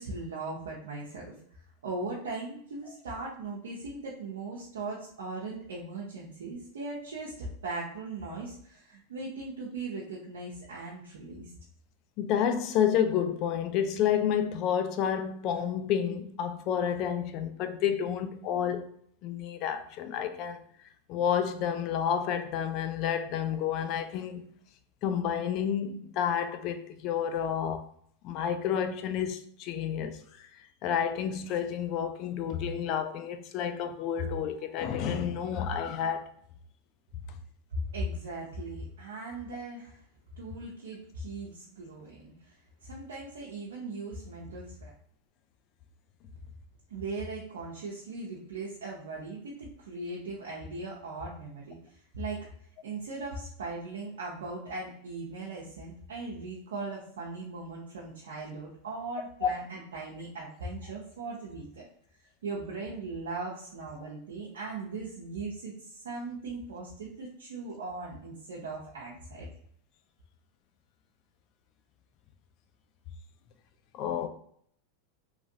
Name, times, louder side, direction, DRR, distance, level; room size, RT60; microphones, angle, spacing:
voice 1, 0.0-1.3 1.8-11.5 37.7-40.0 40.4-44.9 46.9-52.5 52.8-61.8 62.4-69.5, right 3 dB, 90° right, 0.6 m, -39 dB
voice 2, 12.2-18.9 19.2-20.6 21.1-24.5 25.0-27.8 28.2-30.2 30.8-36.3 59.4-59.5 73.9-74.3, left 8 dB, 50° left, 0.4 m, -30 dB
2.9 x 2.4 x 2.6 m
hypercardioid pair, 115°, 0 cm